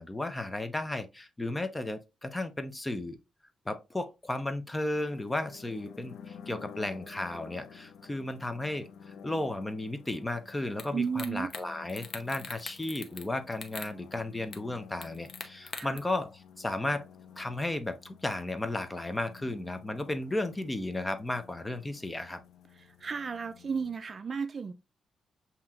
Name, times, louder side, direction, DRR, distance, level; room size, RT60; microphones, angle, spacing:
voice 1, 0.0-3.2 3.7-8.9 9.2-17.1 17.4-22.4, left 2 dB, 15° left, 0.6 m, -34 dB
sound 1, 4.9-24.0, left 7 dB, 80° left, 0.5 m, -52 dB
sound 2, 10.8-10.9 11.2-11.6 11.9-13.3 13.5-13.9 14.5-14.6 15.0-16.0, left 5 dB, 45° left, 0.7 m, -41 dB
voice 2, 10.9-11.5 15.7-16.0 23.0-24.7, right 6 dB, 40° right, 0.3 m, -33 dB
7.2 x 2.8 x 2.4 m
cardioid pair, 135°, 0 cm